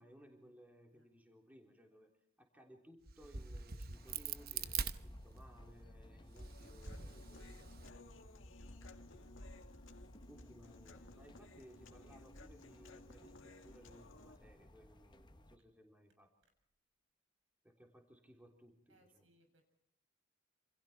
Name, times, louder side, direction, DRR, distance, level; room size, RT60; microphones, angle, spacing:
voice 1, 0.0-2.1 2.4-7.9 9.1-9.3 10.3-16.3 17.6-19.3, equal, 10° right, 1 dB, 3.6 m, -61 dB
Crack, 3.1-5.7 6.2-7.9, right 6 dB, 50° right, 1.0 m, -44 dB
sound 1, 3.9-15.6, left 1 dB, 20° left, 1.1 m, -57 dB
Human voice, 6.4-14.4, left 2 dB, 70° left, 2.1 m, -59 dB
voice 2, 10.8-11.1 18.9-19.6, right 1 dB, 70° right, 5 dB, 7.3 m, -71 dB
28.5 x 27.0 x 4.4 m, 0.67 s
head